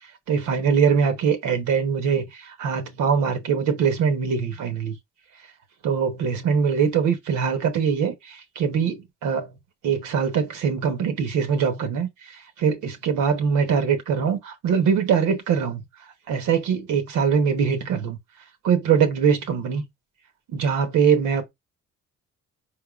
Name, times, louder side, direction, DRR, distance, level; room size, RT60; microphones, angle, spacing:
voice 1, 0.3-5.0 5.8-9.5 9.8-15.9 16.3-18.2 18.6-19.9 20.5-21.5, right 6 dB, 80° right, 1.0 m, -22 dB
4.6 x 3.5 x 2.3 m
cardioid pair, 90°, 30 cm